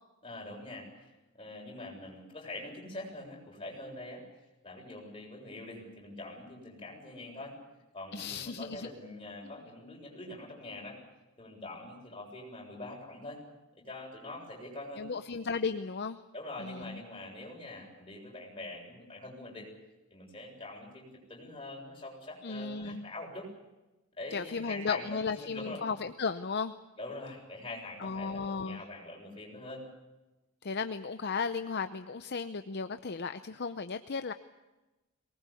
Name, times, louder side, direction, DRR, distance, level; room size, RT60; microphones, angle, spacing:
voice 1, 0.2-4.2 4.6-7.6 7.9-11.0 11.4-13.4 13.8-15.1 16.3-19.7 20.1-23.5 24.2-25.8 27.0-29.9, left 2 dB, 25° left, -1 dB, 7.3 m, -44 dB
voice 2, 8.1-8.9 15.0-16.2 16.6-17.0 22.4-23.1 24.3-26.7 28.0-28.8 30.6-34.3, left 5 dB, 50° left, 10 dB, 0.7 m, -35 dB
23.0 x 20.0 x 8.5 m, 1.0 s
head